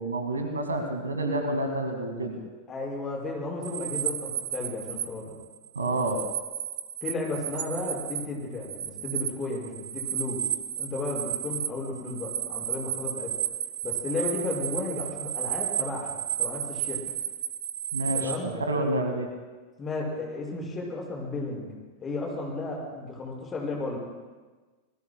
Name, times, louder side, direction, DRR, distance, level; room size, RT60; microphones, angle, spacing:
voice 1, 0.0-2.4 5.8-6.2 17.9-18.3 18.7-19.3, right 1 dB, 75° right, 5 dB, 1.9 m, -28 dB
voice 2, 2.7-5.3 7.0-10.4 10.8-13.3 13.8-17.0 18.1-18.5 19.8-24.0, left 2 dB, 20° left, -2 dB, 5.8 m, -34 dB
sound 1, 3.6-5.1 5.4-8.3 8.5-18.4, right 10 dB, 60° right, 1.0 m, -33 dB
26.0 x 20.0 x 2.2 m, 1.3 s
figure-of-eight pair, 90°, 0 cm